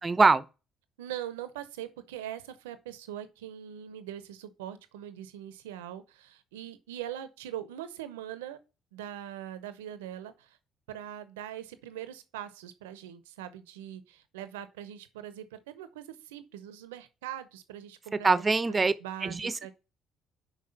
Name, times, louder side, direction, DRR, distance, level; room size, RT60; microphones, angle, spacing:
voice 1, 0.0-0.4 18.2-18.9 19.2-19.5, right 4 dB, 30° right, 0.8 m, -23 dB
voice 2, 1.0-8.6 8.9-10.6 10.9-18.5 18.8-19.7, right 11 dB, 85° right, 0.7 m, -42 dB
5.7 x 5.0 x 6.5 m
hypercardioid pair, 55°, 0 cm